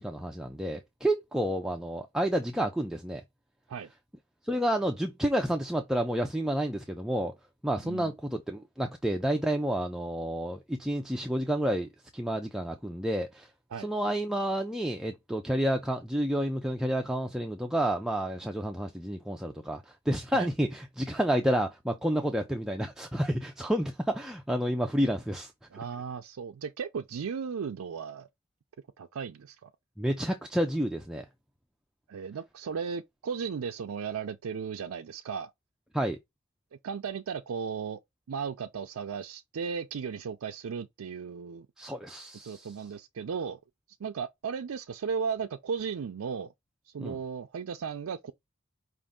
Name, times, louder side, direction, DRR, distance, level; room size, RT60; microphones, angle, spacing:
voice 1, 0.0-3.2 4.4-7.3 7.6-13.5 13.8-25.5 30.0-31.2 35.9-36.2 41.8-42.7 47.0-47.2, right 1 dB, 5° right, 0.4 m, -30 dB
voice 2, 25.7-28.3 29.0-29.7 32.1-35.5 36.8-38.0 38.3-41.7 42.4-43.6 44.0-46.5 46.9-48.3, right 6 dB, 85° right, 0.4 m, -35 dB
5.3 x 2.5 x 3.6 m
head